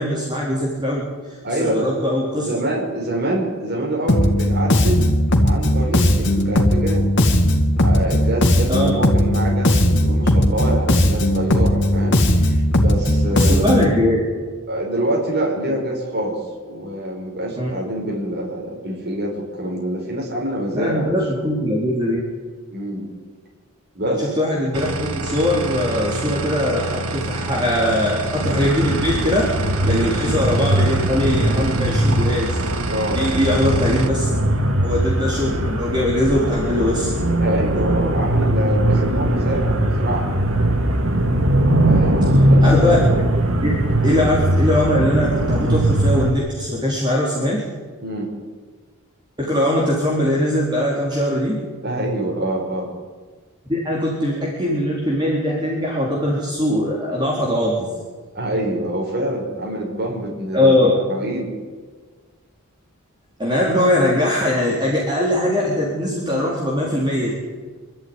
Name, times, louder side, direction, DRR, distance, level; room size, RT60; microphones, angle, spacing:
voice 1, 0.0-2.6 8.7-8.9 13.3-14.2 17.6-17.7 20.7-22.2 24.0-32.6 33.1-34.3 34.8-37.1 41.2-41.3 42.6-43.0 43.6-47.6 49.4-51.6 53.7-57.9 60.5-60.9 63.4-67.3, left 1 dB, 20° right, -4 dB, 4.1 m, -21 dB
voice 2, 1.4-1.9 2.4-5.1 5.4-7.0 7.8-13.9 14.7-21.7 22.7-23.1 23.9-24.3 29.9-30.1 32.9-33.2 37.4-40.3 41.9-42.7 43.8-44.0 48.0-48.3 51.8-52.9 58.3-61.5, right 1 dB, 50° right, -2 dB, 5.6 m, -26 dB
Bass guitar, 4.1-14.0, left 1 dB, 55° left, 2.5 m, -17 dB
sound 1, 24.7-34.1, right 2 dB, 90° right, 1.6 m, -28 dB
sound 2, 28.4-46.3, right 1 dB, 65° right, 2.1 m, -20 dB
25.0 x 13.5 x 9.9 m, 1.5 s
head